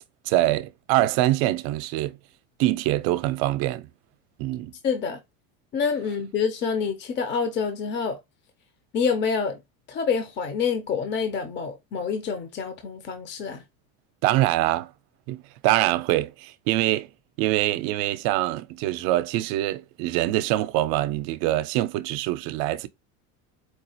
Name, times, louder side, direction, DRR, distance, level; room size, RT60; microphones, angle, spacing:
voice 1, 0.3-2.2 2.6-3.9 4.4-4.7 14.2-14.9 15.3-17.1 17.4-22.9, right 15 dB, 60° right, 0.6 m, -24 dB
voice 2, 4.8-5.2 5.7-8.2 8.9-9.6 9.9-13.6, left 6 dB, 30° left, 0.7 m, -27 dB
4.6 x 2.4 x 2.8 m
supercardioid pair, 130°, 39 cm